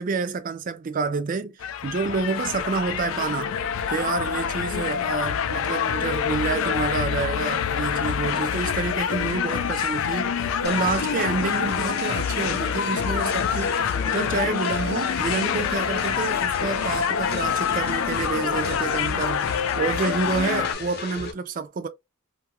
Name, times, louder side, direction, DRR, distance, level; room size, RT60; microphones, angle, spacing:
voice 1, 0.0-1.6 1.8-3.5 3.9-21.9, right 4 dB, 40° right, 0.4 m, -28 dB
sound 1, 1.6-20.7, left 8 dB, 80° left, 0.3 m, -26 dB
sound 2, 10.6-21.3, left 3 dB, 50° left, 0.7 m, -35 dB
2.7 x 2.3 x 2.9 m
head